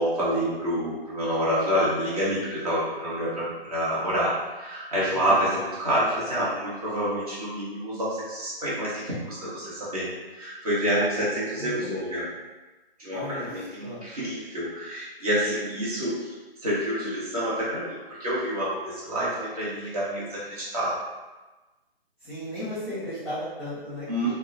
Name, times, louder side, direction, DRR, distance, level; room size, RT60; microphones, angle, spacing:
voice 1, 0.0-10.1 10.3-12.3 13.0-16.3 16.6-21.0 24.1-24.3, equal, 40° right, -9 dB, 1.1 m, -28 dB
voice 2, 5.1-5.4 11.6-11.9 13.1-14.0 22.2-24.3, left 1 dB, ahead, -14 dB, 0.9 m, -35 dB
2.8 x 2.1 x 2.6 m, 1.2 s
figure-of-eight pair, 145°, 30 cm